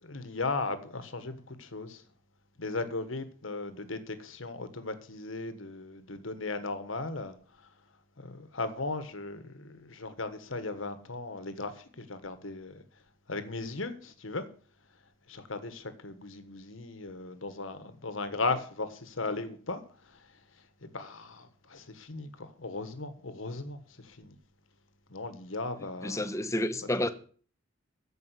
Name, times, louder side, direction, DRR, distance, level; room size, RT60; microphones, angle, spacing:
voice 1, 0.0-2.0 2.6-7.4 8.2-12.8 13.3-14.4 15.3-19.8 20.1-20.2 20.8-24.4 25.1-26.3, left 3 dB, 85° left, 1.4 m, -37 dB
voice 2, 26.0-27.1, left 1 dB, 15° left, 0.9 m, -30 dB
14.0 x 5.3 x 8.2 m
head